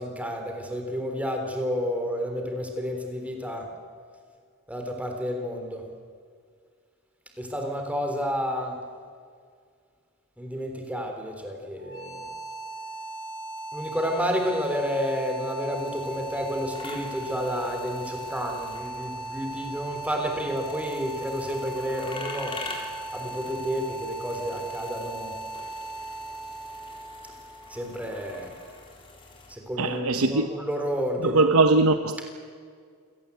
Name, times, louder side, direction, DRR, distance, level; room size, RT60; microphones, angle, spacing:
voice 1, 0.0-3.7 4.7-5.8 7.4-8.8 10.4-12.2 13.7-22.6 23.1-25.3 27.7-28.5 29.5-31.5, equal, 5° right, 3.4 m, -30 dB
sound 1, 11.8-28.7, right 2 dB, 65° left, 3.4 m, -38 dB
sound 2, 15.7-29.6, left 2 dB, 25° left, 4.0 m, -45 dB
voice 2, 29.8-30.5 31.2-32.3, right 3 dB, 70° right, 0.9 m, -21 dB
27.5 x 17.5 x 8.4 m
head